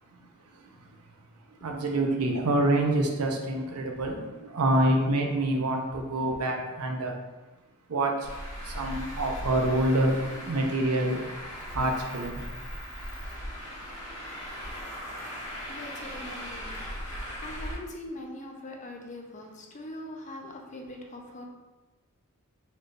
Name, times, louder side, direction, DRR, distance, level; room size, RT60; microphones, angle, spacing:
voice 1, 1.6-4.3 4.5-7.1 7.9-8.1 8.7-11.2 11.7-12.4, right 1 dB, 85° right, 2 dB, 0.7 m, -26 dB
Traffic noise roadway noise, 8.2-17.7, equal, 85° left, 1.4 m, -38 dB
voice 2, 15.7-21.5, left 1 dB, 35° left, 1 dB, 0.6 m, -42 dB
4.3 x 3.2 x 2.5 m, 1.1 s
head